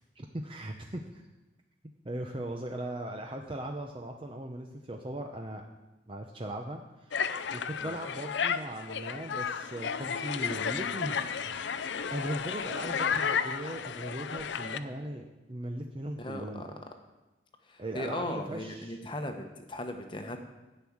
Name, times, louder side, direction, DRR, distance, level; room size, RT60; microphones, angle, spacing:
voice 1, 0.2-1.3 2.0-5.6 6.1-7.2 7.5-11.7 12.1-16.8 17.8-19.0, right 1 dB, 30° right, 3 dB, 0.7 m, -39 dB
sound 1, 7.1-14.8, left 6 dB, 80° left, 0.6 m, -33 dB
voice 2, 16.2-16.6 17.7-20.4, left 1 dB, 25° left, 5 dB, 1.0 m, -37 dB
12.0 x 6.3 x 8.6 m, 1.1 s
head